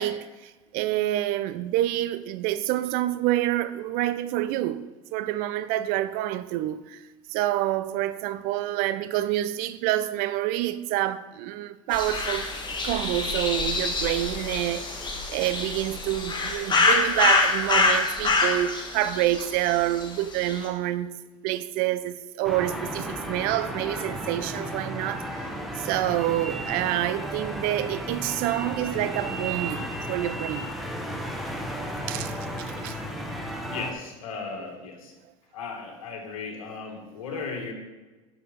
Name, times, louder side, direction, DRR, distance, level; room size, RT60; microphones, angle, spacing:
voice 1, 0.0-4.8 5.1-7.0 7.3-12.5 12.8-21.1 21.4-25.3 25.8-30.7 32.1-33.0, right 14 dB, 60° right, 0.5 m, -27 dB
sound 1, 11.9-20.1 20.4-20.6, left 3 dB, 25° left, 1.7 m, -26 dB
sound 2, 22.4-33.9, equal, ahead, 1.2 m, -34 dB
voice 2, 33.7-35.1 35.5-37.7, left 4 dB, 80° left, 1.8 m, -36 dB
6.5 x 6.5 x 5.2 m
hypercardioid pair, 80°, 17 cm